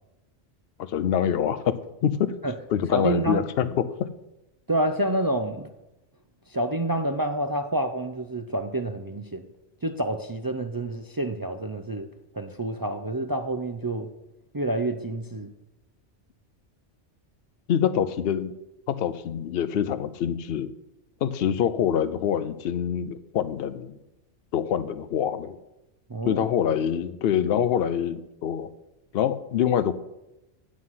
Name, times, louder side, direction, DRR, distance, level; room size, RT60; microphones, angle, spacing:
voice 1, 0.8-2.3 2.7-4.1 17.7-18.5 18.9-20.7 21.2-24.0 24.5-25.5 26.2-28.7 29.1-29.9, left 9 dB, 65° left, 13 dB, 0.8 m, -25 dB
voice 2, 2.9-3.4 4.7-5.7 6.5-9.5 9.8-12.1 12.3-14.1 14.5-15.5 26.1-26.4, right 1 dB, 35° right, 7 dB, 0.3 m, -28 dB
9.8 x 6.3 x 5.6 m, 0.93 s
omnidirectional pair, 1.2 m